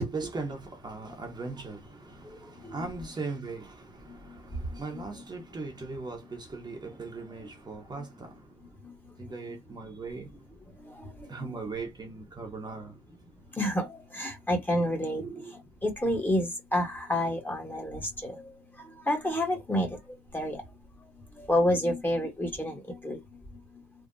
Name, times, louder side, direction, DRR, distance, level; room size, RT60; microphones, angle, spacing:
voice 1, 0.0-2.2 2.7-3.8 4.1-4.4 4.8-8.3 9.2-10.3 11.3-12.9 15.2-15.5, right 3 dB, 25° right, 1.1 m, -38 dB
voice 2, 4.7-5.0 7.4-7.5 8.0-8.1 8.8-8.9 9.5-9.6 10.8-11.6 13.5-18.5 18.8-20.0 20.3-20.6 21.3-23.2, left 1 dB, 10° left, 1.3 m, -30 dB
3.6 x 2.4 x 2.6 m
cardioid pair, 110°, 17 cm